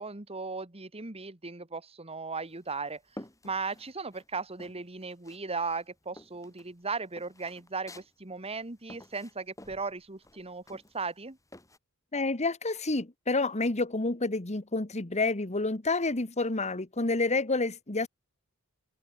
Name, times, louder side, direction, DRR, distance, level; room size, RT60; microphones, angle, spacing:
voice 1, 0.0-3.0 3.4-11.4, right 4 dB, 25° right, 1.8 m, -37 dB
sound 1, 2.4-4.3 4.6-5.4 5.7-11.8, left 1 dB, 15° left, 4.0 m, -51 dB
voice 2, 12.1-18.1, left 3 dB, 30° left, 1.6 m, -29 dB
open air
head